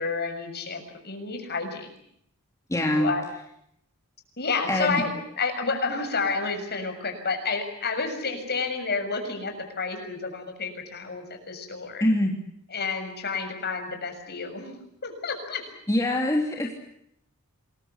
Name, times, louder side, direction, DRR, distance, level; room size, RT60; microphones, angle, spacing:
voice 1, 0.0-1.9 2.9-3.2 4.4-5.1 5.4-12.0 12.7-15.6, left 4 dB, 50° left, 5 dB, 6.9 m, -30 dB
voice 2, 2.7-3.1 4.7-5.0 12.0-12.3 15.9-16.7, left 1 dB, 15° left, 0 dB, 3.2 m, -24 dB
28.0 x 22.0 x 8.1 m, 0.74 s
head